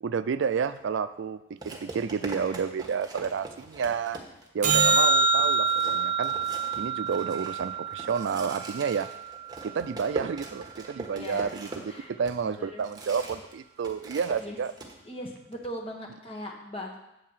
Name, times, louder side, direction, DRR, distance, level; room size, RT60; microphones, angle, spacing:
voice 1, 0.0-4.2 4.5-6.4 6.8-9.1 9.6-14.7, right 6 dB, 65° right, 12 dB, 0.4 m, -30 dB
sound 1, 0.6-0.8 1.6-4.6 5.0-5.1 5.4-13.5 13.8-14.9, right 3 dB, 20° right, 1.3 m, -42 dB
sound 2, 4.6-9.1 15.6-15.7, right 4 dB, 40° right, 0.8 m, -26 dB
voice 2, 11.1-11.5 11.9-12.1 12.6-12.8 14.4-14.6 15.0-17.0, left 1 dB, 30° left, 0 dB, 1.5 m, -39 dB
8.5 x 4.7 x 7.3 m, 0.88 s
head